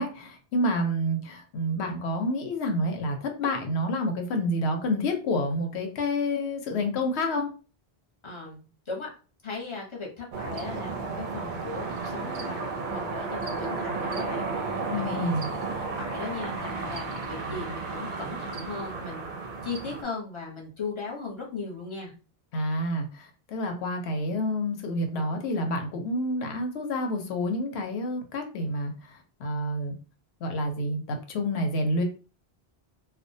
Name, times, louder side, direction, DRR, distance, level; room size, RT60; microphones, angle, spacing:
voice 1, 0.0-7.5 14.9-15.5 22.5-29.9 30.4-32.0, left 1 dB, 80° left, 4 dB, 0.9 m, -28 dB
voice 2, 8.2-9.1 9.4-15.4 16.0-19.3 19.6-22.1, left 4 dB, 30° left, -3 dB, 0.7 m, -38 dB
sound 1, 10.3-20.0, right 4 dB, 55° right, 0.6 m, -33 dB
2.3 x 2.1 x 2.6 m, 0.36 s
omnidirectional pair, 1.1 m